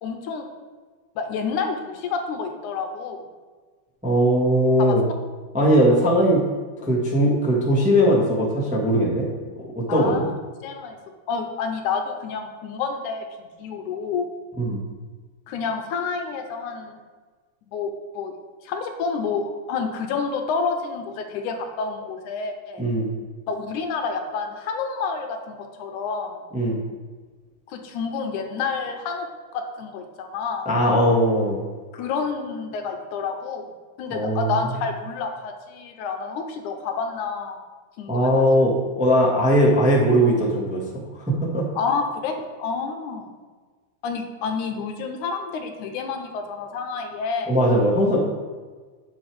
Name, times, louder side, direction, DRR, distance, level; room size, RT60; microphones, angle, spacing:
voice 1, 0.0-0.5 1.2-3.2 4.8-4.9 9.9-10.3 10.6-11.0 11.3-14.3 15.5-17.0 17.7-18.3 18.6-22.8 23.5-26.4 27.7-29.3 29.5-30.7 31.9-33.7 34.0-37.6 38.0-38.5 41.8-43.3 44.0-47.6, left 5 dB, 75° left, 5 dB, 2.1 m, -29 dB
voice 2, 4.0-5.0 5.5-6.4 6.8-9.3 9.6-10.3 14.6-14.8 22.8-23.1 26.5-26.8 30.6-31.6 34.1-34.6 38.1-38.7 39.0-41.7 47.5-48.2, equal, 10° right, -4 dB, 0.4 m, -19 dB
10.5 x 7.1 x 3.5 m, 1.4 s
omnidirectional pair, 3.7 m